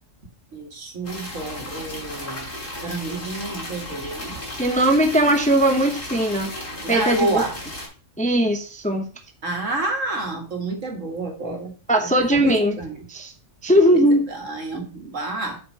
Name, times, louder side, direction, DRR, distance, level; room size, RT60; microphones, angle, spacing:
voice 1, 0.5-2.5 2.8-4.4 6.8-7.5 9.4-11.7 12.0-13.1 13.9-15.6, right 2 dB, 70° right, 3 dB, 2.0 m, -29 dB
sound 1, 1.0-7.9, left 1 dB, 55° left, 3.4 m, -35 dB
voice 2, 4.6-6.5 6.9-7.4 8.2-9.1 11.9-12.8 13.1-13.3 13.6-14.2, right 1 dB, 5° left, 4 dB, 0.7 m, -19 dB
7.3 x 4.7 x 5.4 m, 0.36 s
omnidirectional pair, 1.4 m